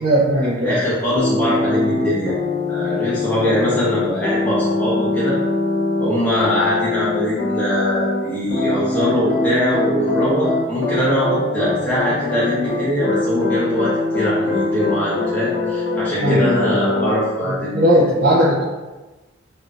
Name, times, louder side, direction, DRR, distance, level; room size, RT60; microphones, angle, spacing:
voice 1, 0.0-0.7 16.2-16.8 17.4-18.6, equal, 55° right, -7 dB, 0.6 m, -17 dB
voice 2, 0.6-2.4 2.7-5.4 6.0-17.8, left 1 dB, 10° left, -9 dB, 1.1 m, -22 dB
sound 1, 1.2-8.2 8.5-17.1, left 2 dB, 55° left, 0.7 m, -22 dB
3.8 x 2.7 x 2.4 m, 1.1 s
head